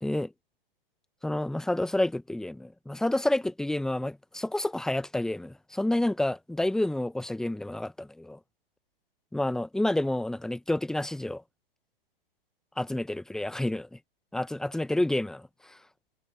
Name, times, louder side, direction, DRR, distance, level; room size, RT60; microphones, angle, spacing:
voice 1, 0.0-0.3 1.2-8.4 9.3-11.4 12.8-14.0 14.3-15.8, left 1 dB, ahead, 0.8 m, -29 dB
hypercardioid pair, 125°, 30 cm